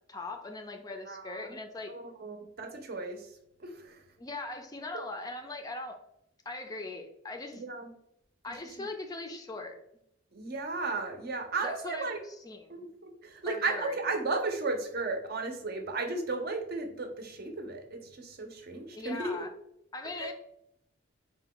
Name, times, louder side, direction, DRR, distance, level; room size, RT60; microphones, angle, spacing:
voice 1, 0.1-1.9 4.2-6.0 6.5-7.6 8.4-9.8 11.6-12.8 13.5-14.0 18.9-19.5 19.9-20.3, left 2 dB, 20° left, 5 dB, 0.4 m, -40 dB
voice 2, 1.1-1.5 1.9-3.2 3.6-4.0 7.6-7.9 8.8-8.9 10.3-12.2 12.7-19.4 20.2-20.3, right 3 dB, 50° right, 4 dB, 0.7 m, -35 dB
4.4 x 2.2 x 3.7 m, 0.78 s
head